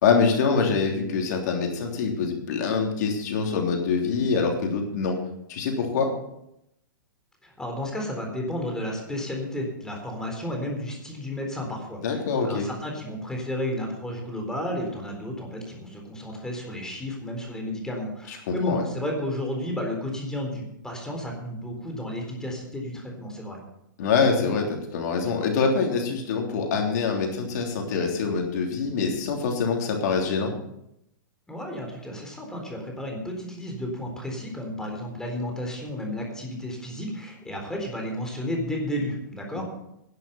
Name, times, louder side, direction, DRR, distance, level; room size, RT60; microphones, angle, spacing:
voice 1, 0.0-5.2 5.5-6.1 12.0-12.7 18.3-18.8 24.0-30.5 39.5-39.6, left 5 dB, 55° left, 2 dB, 3.4 m, -25 dB
voice 2, 7.4-23.6 31.5-39.6, left 1 dB, 5° left, 1 dB, 4.0 m, -32 dB
11.5 x 11.0 x 5.9 m, 0.80 s
hypercardioid pair, 110°, 11 cm